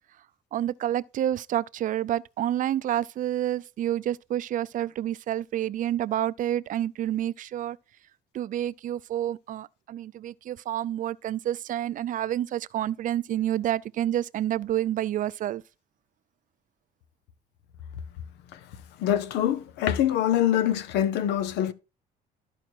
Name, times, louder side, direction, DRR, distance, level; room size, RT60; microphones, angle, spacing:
voice 1, 0.5-7.8 8.3-15.6, right 12 dB, 50° right, 0.4 m, -29 dB
voice 2, 19.0-21.7, left 11 dB, 90° left, 0.9 m, -24 dB
13.0 x 4.9 x 4.5 m
cardioid pair, 110°, 17 cm